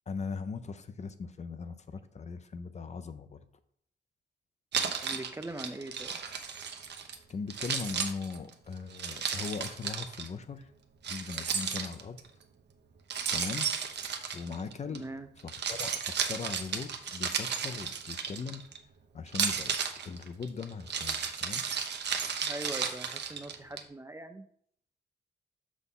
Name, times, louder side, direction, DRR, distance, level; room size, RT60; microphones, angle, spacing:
voice 1, 0.1-3.4 7.3-10.7 11.1-12.2 13.3-13.7 14.3-15.0 15.7-18.6 19.1-19.8 20.0-21.6, left 5 dB, 40° left, 11 dB, 0.5 m, -39 dB
Keys jangling, 4.7-7.2 7.5-10.3 11.0-12.3 13.1-15.0 15.4-18.8 19.3-23.8, right 7 dB, 75° right, 0.8 m, -34 dB
voice 2, 5.0-6.1 14.9-15.3 22.4-24.5, right 2 dB, 15° right, 8 dB, 0.4 m, -41 dB
6.7 x 6.2 x 3.7 m, 0.67 s
wide cardioid pair, 145°, 18 cm